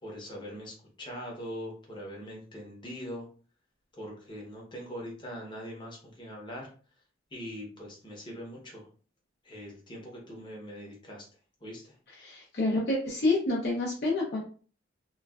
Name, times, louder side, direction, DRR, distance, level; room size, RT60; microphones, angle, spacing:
voice 1, 0.0-3.3 4.0-6.7 7.3-8.9 9.4-11.3 11.6-12.0, equal, 25° left, -2 dB, 0.9 m, -42 dB
voice 2, 12.2-14.4, left 2 dB, 55° left, -5 dB, 0.7 m, -28 dB
3.0 x 2.2 x 2.3 m, 0.40 s
head